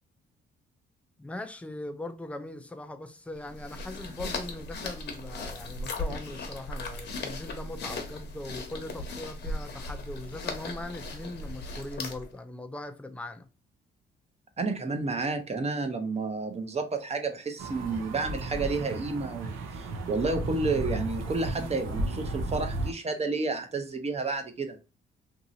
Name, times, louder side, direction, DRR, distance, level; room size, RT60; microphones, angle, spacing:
voice 1, 1.2-13.5, left 2 dB, 5° left, 0.5 m, -40 dB
sound 1, 3.4-12.4, left 2 dB, 60° left, 0.9 m, -37 dB
voice 2, 14.6-24.8, right 3 dB, 30° right, 0.7 m, -31 dB
sound 2, 17.6-22.9, right 2 dB, 85° right, 0.7 m, -34 dB
2.9 x 2.7 x 2.6 m
cardioid pair, 90°, 20 cm